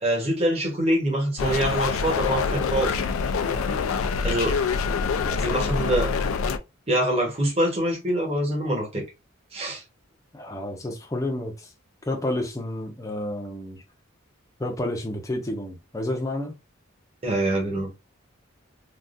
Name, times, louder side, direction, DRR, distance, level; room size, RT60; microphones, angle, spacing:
voice 1, 0.0-2.9 4.2-4.6 5.4-6.1 6.9-9.0 9.5-9.8 17.2-17.9, right 1 dB, 30° right, 1.2 m, -24 dB
sound 1, 1.4-6.6, left 5 dB, 80° left, 0.4 m, -25 dB
voice 2, 5.2-5.6 10.3-11.7 12.0-13.8 14.6-16.6, left 1 dB, 15° left, 0.6 m, -30 dB
3.5 x 2.3 x 2.5 m
head